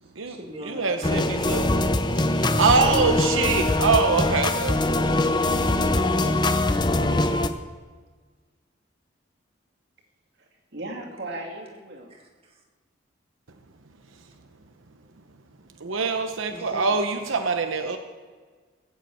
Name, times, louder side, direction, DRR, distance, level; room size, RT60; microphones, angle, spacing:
voice 1, 0.0-2.3 5.1-6.6 12.2-12.6 16.5-16.9, equal, 30° right, 0 dB, 1.8 m, -41 dB
voice 2, 0.6-1.9 2.4-5.2 14.1-14.2 15.8-18.0, right 4 dB, 85° right, 6 dB, 0.9 m, -24 dB
sound 1, 1.0-7.5, left 2 dB, 20° left, 0.6 m, -22 dB
voice 3, 10.4-12.2, right 2 dB, 55° right, 0 dB, 2.5 m, -37 dB
16.5 x 8.2 x 7.7 m, 1.4 s
head